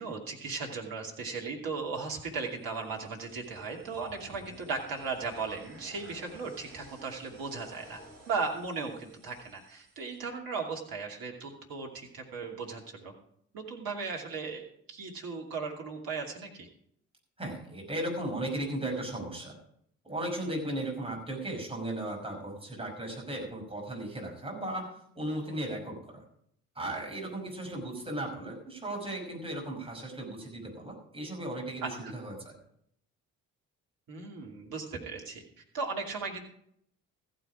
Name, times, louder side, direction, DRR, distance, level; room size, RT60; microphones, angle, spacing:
voice 1, 0.0-8.0 8.3-13.1 13.5-16.7 31.8-32.1 34.1-35.4 35.7-36.4, right 4 dB, 55° right, 0 dB, 2.7 m, -37 dB
sound 1, 2.2-10.2, right 1 dB, 35° right, 5.4 m, -54 dB
voice 2, 17.4-19.6 20.0-24.9 25.2-26.2 26.8-32.6, right 1 dB, 15° right, 0 dB, 5.6 m, -36 dB
14.5 x 9.3 x 4.9 m, 0.68 s
figure-of-eight pair, 45°, 42 cm